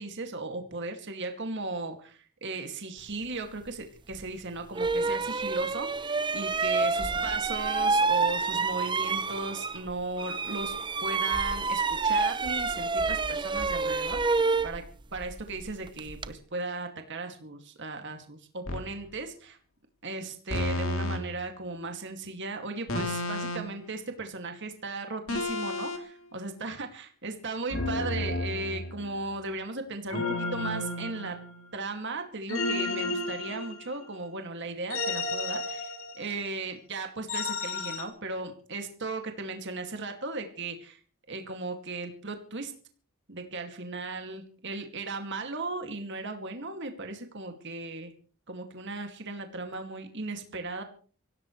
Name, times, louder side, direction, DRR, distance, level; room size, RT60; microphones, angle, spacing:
voice 1, 0.0-14.8 15.1-19.6 20.0-31.4 31.7-41.0 41.3-42.7 43.3-48.1 48.5-50.8, right 3 dB, 55° right, 5 dB, 2.4 m, -37 dB
sound 1, 4.1-4.2 4.7-9.9 10.2-16.3, right 4 dB, 20° right, 0.8 m, -28 dB
sound 2, 18.7-18.9 20.5-21.2 22.9-23.8 25.3-26.0 27.7-29.2 30.1-31.7 32.5-34.1 34.9-36.4 37.3-38.0, left 2 dB, 70° left, 3.2 m, -32 dB
25.0 x 16.5 x 3.2 m, 0.42 s
head